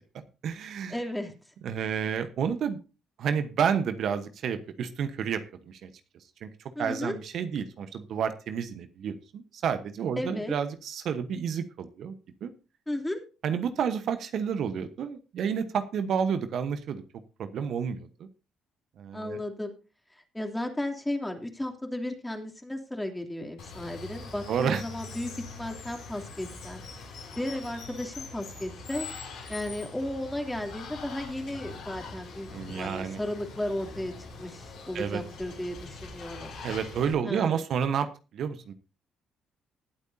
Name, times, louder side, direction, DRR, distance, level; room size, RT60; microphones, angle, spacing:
voice 1, 0.1-0.9 1.6-2.8 3.2-5.9 6.4-6.5 6.8-12.1 12.4-12.5 13.4-17.0 17.4-18.1 19.0-19.4 24.5-24.8 32.5-33.2 34.9-35.2 36.6-38.1 38.3-38.7, right 7 dB, 65° right, 9 dB, 1.1 m, -30 dB
voice 2, 0.9-1.3 6.7-7.2 10.2-10.5 12.9-13.2 19.1-19.7 20.1-26.8 27.4-29.1 29.5-34.1 34.4-36.5 37.2-37.7, left 1 dB, 10° left, 3 dB, 2.9 m, -34 dB
Water, 23.6-37.1, left 3 dB, 70° left, 6.7 m, -43 dB
20.0 x 8.2 x 2.8 m, 0.31 s
hypercardioid pair, 55°, 0 cm